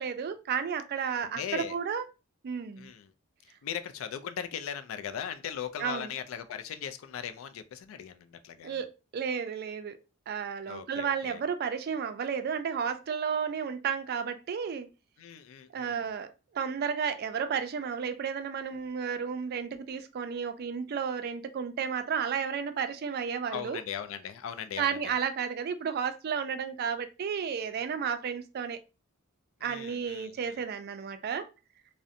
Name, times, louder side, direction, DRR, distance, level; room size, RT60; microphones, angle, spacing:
voice 1, 0.0-2.1 2.4-2.9 5.8-6.1 8.6-10.0 10.3-14.9 15.7-16.3 16.5-23.8 24.8-28.8 29.6-31.5, right 7 dB, 50° right, 0.3 m, -32 dB
voice 2, 1.2-1.8 2.8-3.1 3.6-8.8 10.7-11.4 15.2-16.1 23.5-25.1 29.6-30.6, left 8 dB, 75° left, 0.3 m, -39 dB
2.5 x 2.1 x 2.6 m
head